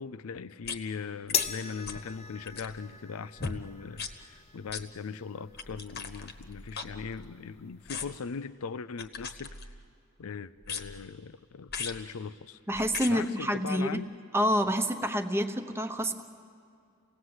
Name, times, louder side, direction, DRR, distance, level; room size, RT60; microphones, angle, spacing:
voice 1, 0.0-9.6 10.2-12.6 13.1-14.1, left 5 dB, 80° left, 16 dB, 0.5 m, -39 dB
sound 1, 0.6-0.8 1.3-1.5 1.8-2.1 2.4-2.8 3.4-3.6 3.9-4.1 4.7-4.8 5.5-7.4 7.9-8.3 9.0-9.9 10.6-11.1 11.7-12.0 12.7-13.1 13.9-14.0, left 5 dB, 50° left, 1.3 m, -39 dB
sound 2, 1.3-7.9, left 7 dB, 30° left, 0.7 m, -40 dB
voice 2, 12.7-14.0 14.3-16.2, equal, 10° right, 6 dB, 1.0 m, -28 dB
28.0 x 18.5 x 8.0 m, 2.3 s
head